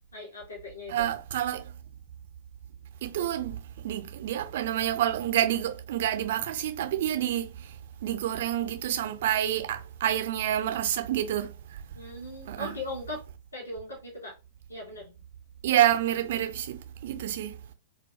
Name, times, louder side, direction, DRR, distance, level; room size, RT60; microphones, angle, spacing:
voice 1, 0.1-1.1 11.9-13.2 13.5-14.4 14.7-15.2, left 1 dB, 75° left, 0.7 m, -39 dB
voice 2, 0.9-1.7 3.0-3.6 3.8-7.5 8.0-11.5 12.5-12.7 15.6-17.5, right 11 dB, 55° right, 0.4 m, -28 dB
2.2 x 2.2 x 2.5 m
figure-of-eight pair, 100°, 0 cm